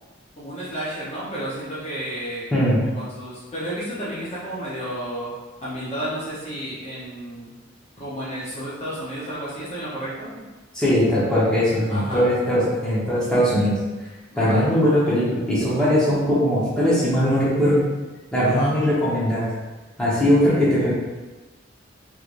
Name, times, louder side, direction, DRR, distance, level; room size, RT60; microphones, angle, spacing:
voice 1, 0.4-5.3 5.6-7.5 8.0-10.4 11.9-12.2 14.3-14.6 18.4-18.7, right 1 dB, 30° left, -8 dB, 0.8 m, -32 dB
voice 2, 2.5-2.8 10.7-13.7 14.4-17.8 18.3-19.5 20.0-20.9, equal, 5° left, -10 dB, 1.0 m, -20 dB
3.3 x 3.2 x 2.5 m, 1.2 s
head